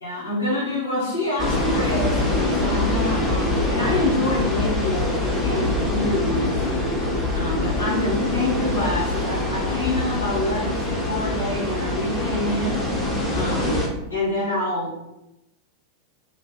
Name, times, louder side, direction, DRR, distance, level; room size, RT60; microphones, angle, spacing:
voice 1, 0.0-12.8 13.3-15.0, left 1 dB, 75° left, -8 dB, 1.1 m, -27 dB
sound 1, 1.4-13.9, left 2 dB, 10° left, 0.8 m, -24 dB
2.6 x 2.5 x 3.6 m, 0.90 s
figure-of-eight pair, 90°, 0 cm